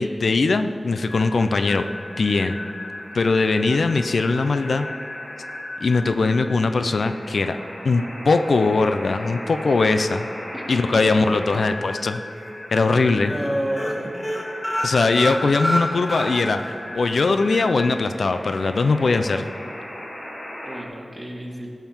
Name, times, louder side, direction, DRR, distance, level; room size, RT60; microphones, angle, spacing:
voice 1, 0.0-1.9 2.2-2.6 3.1-4.9 5.8-7.6 7.8-10.3 10.7-12.2 12.7-13.3 14.8-19.5, left 3 dB, 90° left, 9 dB, 0.5 m, -20 dB
sound 1, 1.1-20.8, left 1 dB, 55° left, 2.5 m, -37 dB
sound 2, 11.9-12.5 12.8-13.0 13.3-13.5 13.7-16.7 17.1-17.2 17.6-17.7, equal, 25° left, 2.7 m, -27 dB
voice 2, 13.1-14.1 20.6-21.7, equal, 10° right, -2 dB, 2.3 m, -30 dB
17.0 x 5.9 x 7.2 m, 2.4 s
wide cardioid pair, 80°, 0 cm